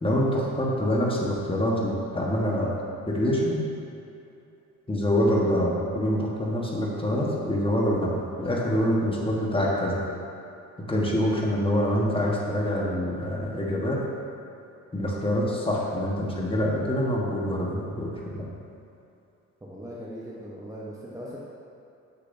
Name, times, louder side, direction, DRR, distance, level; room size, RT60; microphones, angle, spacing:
voice 1, 0.0-2.7 3.1-3.6 4.9-8.1 8.4-10.0 10.9-14.0 14.9-18.5, equal, 20° left, -3 dB, 1.3 m, -25 dB
voice 2, 19.6-21.4, equal, 10° right, -6 dB, 0.9 m, -39 dB
7.4 x 6.8 x 2.7 m, 2.7 s
cardioid pair, 90°, 30 cm